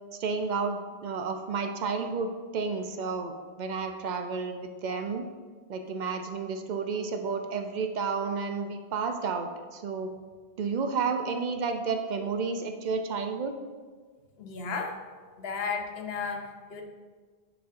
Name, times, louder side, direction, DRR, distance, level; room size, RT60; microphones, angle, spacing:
voice 1, 0.2-5.2 5.7-10.1 10.6-13.6, right 5 dB, 55° right, 6 dB, 0.5 m, -31 dB
voice 2, 14.4-15.0 15.4-16.8, left 5 dB, 75° left, 3 dB, 1.0 m, -34 dB
9.0 x 4.2 x 2.5 m, 1.5 s
omnidirectional pair, 1.0 m